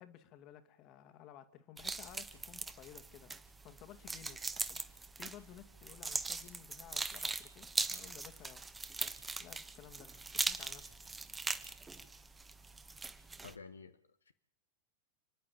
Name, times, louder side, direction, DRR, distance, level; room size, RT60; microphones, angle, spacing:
voice 1, 0.0-4.4 4.7-4.8 5.2-8.6 9.4-11.0, left 11 dB, 40° left, 10 dB, 2.1 m, -55 dB
sound 1, 1.8-13.5, right 3 dB, 10° right, 1.4 m, -41 dB
voice 2, 13.4-14.3, left 5 dB, 75° left, 10 dB, 1.1 m, -52 dB
30.0 x 11.0 x 8.7 m, 0.74 s
figure-of-eight pair, 90°, 0 cm